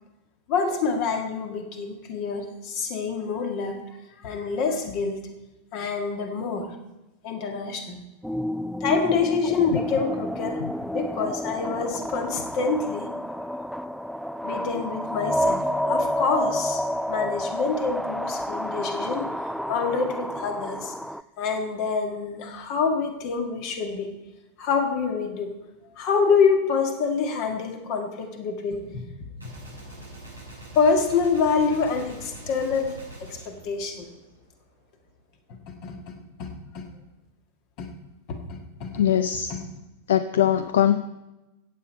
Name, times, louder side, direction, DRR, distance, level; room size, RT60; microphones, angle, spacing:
voice 1, 0.5-3.8 4.2-5.3 5.7-6.8 7.2-8.0 8.8-10.6 10.9-13.1 14.4-15.6 15.9-16.8 17.1-20.9 21.4-24.1 24.6-25.5 26.0-29.6 30.7-34.1 35.8-36.0 36.4-36.9 37.8-37.9 38.3-39.0 39.5-39.6, left 5 dB, 45° left, 4 dB, 1.8 m, -26 dB
sound 1, 8.2-21.2, equal, ahead, 0.3 m, -29 dB
Gunshot gunfire, 29.4-34.6, right 1 dB, 85° left, 5.5 m, -43 dB
voice 2, 38.9-39.5 40.1-41.0, left 10 dB, 60° left, 12 dB, 0.5 m, -21 dB
15.0 x 8.7 x 4.5 m, 0.99 s
figure-of-eight pair, 90°, 0 cm